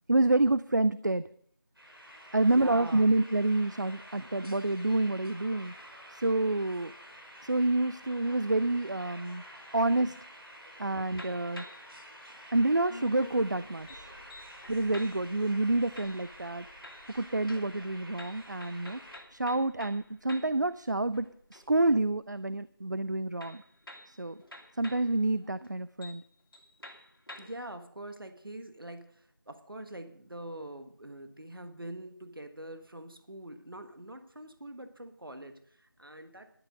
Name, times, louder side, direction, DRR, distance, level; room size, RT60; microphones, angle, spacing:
voice 1, 0.1-1.3 2.3-5.7 6.1-6.9 7.4-9.4 9.7-10.2 10.8-11.6 12.5-14.1 14.7-16.7 17.1-19.0 19.3-23.6 24.1-24.4 24.7-26.2, right 2 dB, 55° right, 16 dB, 0.4 m, -28 dB
sound 1, 1.8-19.2, equal, 90° right, 4.5 m, -50 dB
voice 2, 2.4-3.1 9.6-9.7 10.6-10.8 27.4-36.5, right 1 dB, 75° right, 8 dB, 1.4 m, -44 dB
sound 2, 11.1-12.0 12.9-15.4 16.0-16.6 16.8-20.7 21.0-21.9 23.4-25.1 25.6-25.7 26.0-26.3 26.5-27.7, left 1 dB, 75° left, 2.1 m, -49 dB
sound 3, 13.1-25.1, left 1 dB, 5° right, 6.6 m, -61 dB
12.0 x 10.5 x 5.1 m, 0.62 s
figure-of-eight pair, 175°, 12 cm